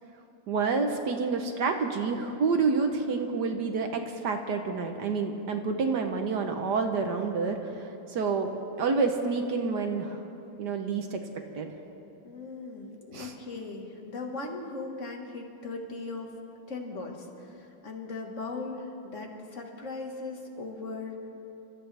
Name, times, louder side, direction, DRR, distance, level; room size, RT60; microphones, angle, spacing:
voice 1, 0.5-8.5 8.8-10.2 10.6-11.2 11.5-11.7 13.1-13.3, right 4 dB, 60° right, 5 dB, 1.4 m, -28 dB
voice 2, 12.2-16.4 16.7-21.2, left 3 dB, 40° left, 2 dB, 1.8 m, -38 dB
28.5 x 14.0 x 3.4 m, 2.8 s
omnidirectional pair, 2.2 m